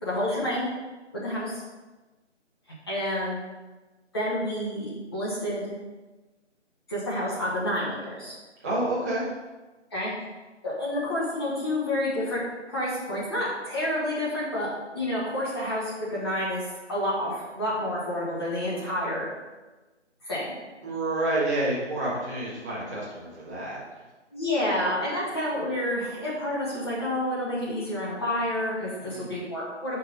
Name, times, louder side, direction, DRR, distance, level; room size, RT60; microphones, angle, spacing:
voice 1, 0.0-0.7 1.1-1.6 2.9-3.4 4.1-5.7 6.9-8.3 9.9-10.1 10.6-12.4 12.7-14.7 14.9-19.3 20.3-20.6 24.3-30.0, left 1 dB, 20° left, -7 dB, 1.3 m, -29 dB
voice 2, 8.6-9.3 20.8-23.8 29.0-29.4, right 1 dB, 15° right, -9 dB, 1.6 m, -29 dB
8.0 x 5.7 x 4.0 m, 1.2 s
figure-of-eight pair, 155°, 36 cm